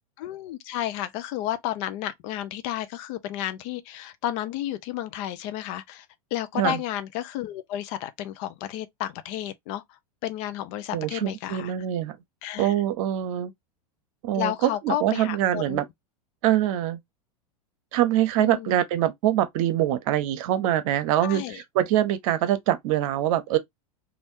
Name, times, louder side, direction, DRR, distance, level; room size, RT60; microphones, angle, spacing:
voice 1, 0.2-6.1 6.3-11.7 12.4-12.7 14.3-15.8 18.4-18.8 21.2-21.6, left 12 dB, 55° left, 0.6 m, -32 dB
voice 2, 10.9-12.2 12.6-13.5 14.2-15.8 16.4-17.0 17.9-23.6, right 12 dB, 60° right, 0.8 m, -24 dB
3.5 x 2.6 x 2.6 m
hypercardioid pair, 100°, 19 cm